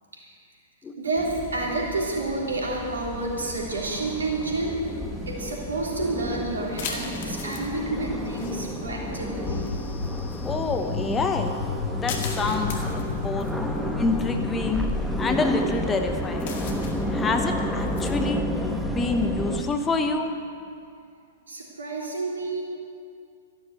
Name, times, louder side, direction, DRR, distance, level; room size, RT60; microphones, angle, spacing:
voice 1, 1.0-4.7 5.3-9.7 21.5-22.6, right 2 dB, 75° right, -2 dB, 3.4 m, -29 dB
sound 1, 1.2-19.6, equal, ahead, 1.1 m, -31 dB
sound 2, 3.6-18.3, left 5 dB, 50° left, 2.0 m, -42 dB
sound 3, 9.5-14.6, left 6 dB, 70° left, 0.7 m, -33 dB
voice 2, 10.4-11.6 11.9-13.5 14.0-14.8 15.2-16.6 17.1-18.4 18.8-20.3, left 4 dB, 15° left, 5 dB, 1.0 m, -27 dB
14.0 x 11.5 x 6.7 m, 2.3 s
figure-of-eight pair, 105°, 0 cm